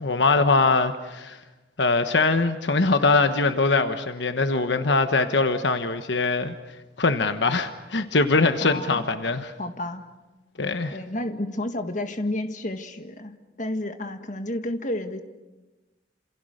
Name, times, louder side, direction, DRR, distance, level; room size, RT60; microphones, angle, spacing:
voice 1, 0.0-1.4 1.8-6.5 7.0-9.5 10.6-11.0, left 3 dB, 75° left, 8 dB, 1.2 m, -22 dB
voice 2, 8.6-9.1 9.6-10.1 10.9-13.3 13.6-15.2, left 1 dB, 45° left, 7 dB, 1.8 m, -31 dB
28.0 x 28.0 x 6.6 m, 1.1 s
head